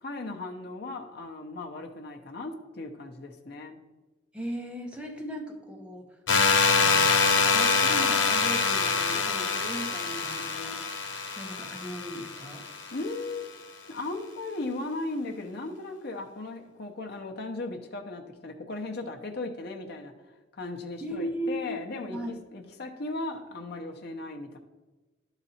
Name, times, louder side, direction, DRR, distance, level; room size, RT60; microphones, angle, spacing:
voice 1, 0.0-3.8 12.9-13.5 13.9-20.1 20.6-24.6, left 2 dB, 60° left, 2 dB, 0.8 m, -37 dB
voice 2, 4.3-6.1 6.7-7.2 7.5-12.6 21.0-21.8 22.1-22.3, equal, 5° right, 1 dB, 1.0 m, -37 dB
sound 1, 6.3-13.1, left 4 dB, 85° left, 1.1 m, -25 dB
11.0 x 4.0 x 4.2 m, 1.2 s
head